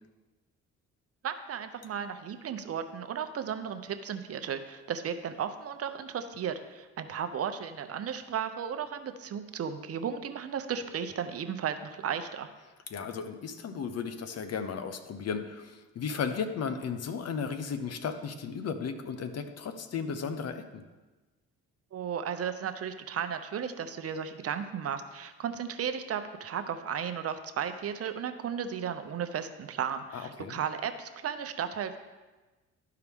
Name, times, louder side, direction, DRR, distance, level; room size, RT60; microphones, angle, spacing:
voice 1, 1.2-12.5 21.9-32.0, right 8 dB, 50° right, 9 dB, 0.6 m, -35 dB
voice 2, 12.9-20.8 30.1-30.6, left 6 dB, 55° left, 9 dB, 0.8 m, -35 dB
12.5 x 4.7 x 3.5 m, 1.2 s
cardioid pair, 90°, 30 cm